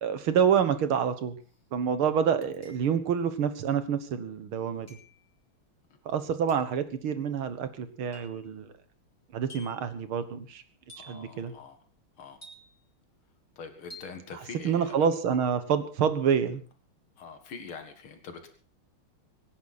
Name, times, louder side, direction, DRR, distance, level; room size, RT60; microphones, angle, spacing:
voice 1, 0.0-1.4 1.7-4.9 6.1-8.7 9.3-10.6 11.1-11.5 14.3-16.6, right 7 dB, 80° right, 11 dB, 2.3 m, -27 dB
sound 1, 1.4-1.5 2.6-3.2 4.9-5.2 6.5-6.8 8.1-8.5 9.5-9.9 10.9-11.3 12.4-12.9 13.9-14.2, equal, 5° left, 6.1 m, -50 dB
voice 2, 11.0-11.8 12.2-12.4 13.6-15.0 17.2-18.5, left 5 dB, 85° left, 6 dB, 2.8 m, -44 dB
25.0 x 10.5 x 4.3 m, 0.39 s
omnidirectional pair, 2.3 m